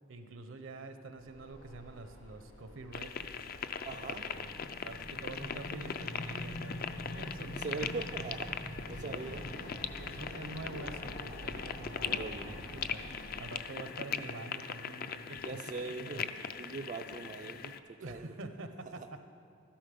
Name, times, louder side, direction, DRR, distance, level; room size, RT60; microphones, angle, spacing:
voice 1, 0.1-3.4 3.9-8.1 8.8-15.5 16.0-16.3 18.0-19.2, right 2 dB, 75° right, 8 dB, 0.8 m, -47 dB
sound 1, 1.2-13.4, equal, 80° left, 3.5 m, -49 dB
sound 2, 2.9-17.8, left 7 dB, 45° left, 0.4 m, -40 dB
voice 2, 3.9-4.3 7.4-8.5 8.9-9.4 12.0-12.5 15.4-18.3 19.0-19.1, right 4 dB, 40° right, 5 dB, 0.3 m, -41 dB
sound 3, 4.3-15.8, equal, 65° left, 1.4 m, -48 dB
13.0 x 10.5 x 5.2 m, 2.4 s
head